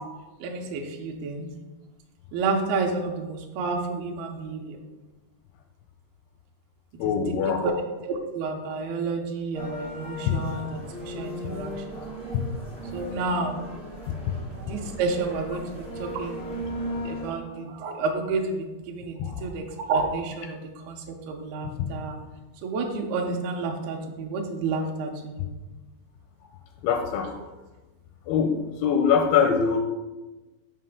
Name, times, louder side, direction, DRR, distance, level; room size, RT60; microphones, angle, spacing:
voice 1, 0.4-1.5 2.3-4.8 7.0-7.3 7.6-7.7 8.0-12.0 12.9-13.6 14.6-16.4 17.1-22.2 22.6-25.5, right 4 dB, 80° right, 1 dB, 2.4 m, -30 dB
voice 2, 7.0-7.7 10.3-10.4 12.3-12.4 19.2-19.4 26.8-27.3 28.3-28.6 28.8-29.8, left 7 dB, 85° left, 4 dB, 2.3 m, -23 dB
sound 1, 9.5-17.3, equal, 10° left, 0.4 m, -37 dB
7.5 x 5.4 x 3.5 m, 1.1 s
omnidirectional pair, 5.0 m